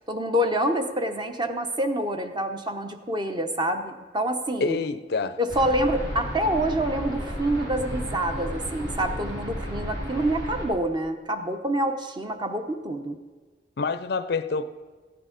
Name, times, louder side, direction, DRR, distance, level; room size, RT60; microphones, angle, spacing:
voice 1, 0.1-4.8 5.4-13.2, right 1 dB, 25° right, 6 dB, 0.8 m, -27 dB
voice 2, 4.6-5.4 13.8-14.6, left 4 dB, 60° left, 12 dB, 0.5 m, -27 dB
sound 1, 5.5-10.7, equal, 75° right, 3.2 m, -33 dB
14.0 x 8.8 x 5.1 m, 1.4 s
head